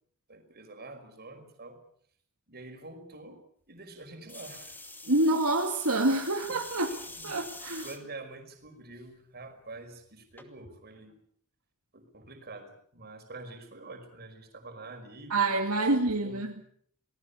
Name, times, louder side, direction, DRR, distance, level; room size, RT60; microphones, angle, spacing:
voice 1, 0.3-1.8 2.5-3.4 3.7-4.9 6.5-7.4 7.8-11.2 11.9-15.6 15.9-16.5, right 2 dB, 45° right, 5.3 m, -47 dB
sound 1, 4.3-8.0 8.6-9.1 10.4-10.5, left 2 dB, 10° left, 2.6 m, -45 dB
voice 2, 5.0-6.9 7.2-7.8 15.3-16.5, right 2 dB, 70° right, 2.4 m, -27 dB
28.0 x 19.5 x 7.1 m
head